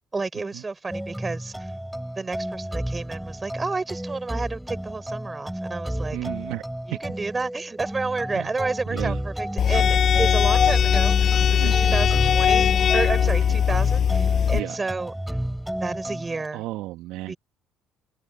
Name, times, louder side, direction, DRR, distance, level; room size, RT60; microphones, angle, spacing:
voice 1, 0.1-1.7 2.2-6.2 6.9-15.1 15.8-16.6 17.3-17.4, right 3 dB, 25° right, 5.8 m, -31 dB
sound 1, 0.9-16.5, right 1 dB, 5° right, 4.9 m, -32 dB
voice 2, 6.1-6.6 8.3-8.5 8.9-9.2 11.6-12.0 13.2-13.6 14.5-14.8 16.5-17.3, right 17 dB, 75° right, 2.1 m, -33 dB
sound 2, 9.6-14.6, left 8 dB, 50° left, 6.0 m, -20 dB
hypercardioid pair, 60°, 0 cm